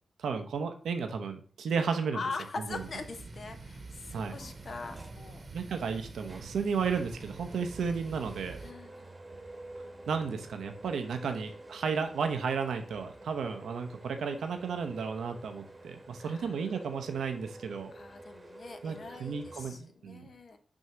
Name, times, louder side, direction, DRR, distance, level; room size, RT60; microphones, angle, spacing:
voice 1, 0.2-2.2 2.7-2.8 4.1-4.3 5.5-8.6 10.1-17.9 18.8-20.3, right 5 dB, 90° right, 7 dB, 0.7 m, -33 dB
voice 2, 2.1-5.5 8.6-9.1 16.2-16.8 17.9-20.6, left 4 dB, 65° left, 7 dB, 0.9 m, -42 dB
sound 1, 2.7-8.7, right 3 dB, 55° right, 1.0 m, -46 dB
sound 2, 4.3-19.7, right 1 dB, 30° right, 1.0 m, -50 dB
6.2 x 2.8 x 5.6 m, 0.43 s
cardioid pair, 50°, 0 cm